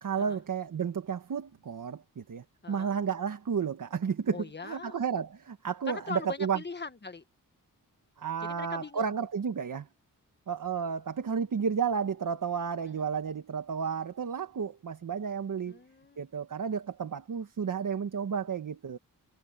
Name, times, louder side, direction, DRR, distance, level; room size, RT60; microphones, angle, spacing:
voice 1, 0.0-6.6 8.2-9.9 10.5-15.8 16.2-19.0, right 6 dB, 65° right, 1.5 m, -32 dB
voice 2, 2.6-3.0 4.3-4.9 5.9-7.2 8.4-9.1 15.7-16.2, left 4 dB, 30° left, 1.5 m, -40 dB
wide cardioid pair, 105°, 34 cm